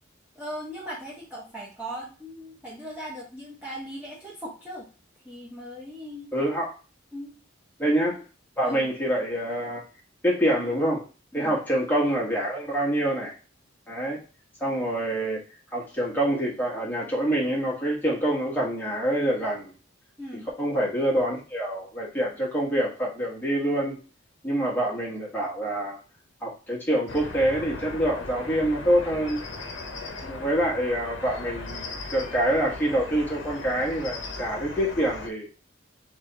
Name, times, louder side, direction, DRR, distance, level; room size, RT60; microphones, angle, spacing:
voice 1, 0.4-4.9 5.2-6.3 7.1-7.3 8.6-8.8 11.3-11.6 20.2-20.5, equal, 10° right, -6 dB, 0.9 m, -38 dB
voice 2, 6.3-6.7 7.8-8.2 8.6-9.8 10.2-11.0 11.3-13.4 13.9-14.2 14.6-15.4 15.7-19.7 20.6-24.0 24.4-26.0 26.4-29.4 30.2-35.5, right 1 dB, 10° left, -4 dB, 1.3 m, -26 dB
sound 1, 27.1-35.3, left 3 dB, 70° left, 0.7 m, -38 dB
3.4 x 3.3 x 3.9 m, 0.35 s
head